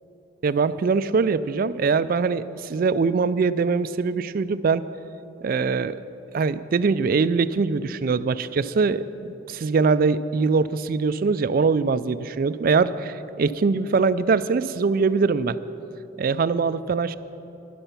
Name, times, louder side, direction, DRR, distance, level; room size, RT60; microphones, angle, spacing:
voice 1, 0.4-4.9 5.4-6.0 6.3-9.1 9.5-15.6 16.2-17.1, right 4 dB, 45° right, 15 dB, 0.3 m, -22 dB
12.5 x 11.0 x 5.8 m, 3.0 s
head